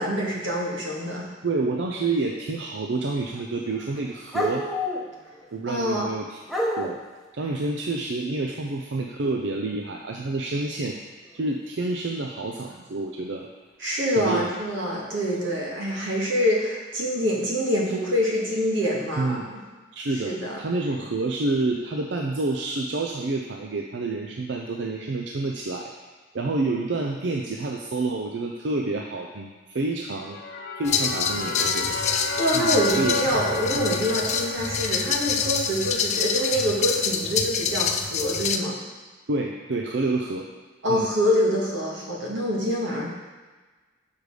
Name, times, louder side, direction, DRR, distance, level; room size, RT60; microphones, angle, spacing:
voice 1, 0.0-1.3 5.7-6.1 13.8-19.4 20.2-20.6 32.4-38.8 40.8-43.1, equal, 90° right, -3 dB, 1.7 m, -25 dB
voice 2, 1.4-4.7 5.5-6.4 6.8-7.0 7.3-11.0 11.3-13.5 14.2-14.5 15.9-16.1 19.2-19.4 19.9-20.3 20.6-25.9 26.3-30.4 30.8-32.0 32.5-33.4 39.3-40.5 40.9-41.1, right 3 dB, 70° right, 1 dB, 0.5 m, -28 dB
sound 1, 3.0-3.4 3.7-5.5 6.4-7.0 11.2-11.5 12.7-12.8 14.9-15.0 15.9-16.1, left 1 dB, ahead, 0.8 m, -30 dB
sound 2, 30.1-37.0, left 2 dB, 70° left, 0.9 m, -33 dB
sound 3, 30.8-38.6, left 6 dB, 35° left, 0.4 m, -27 dB
6.6 x 5.2 x 4.9 m, 1.3 s
head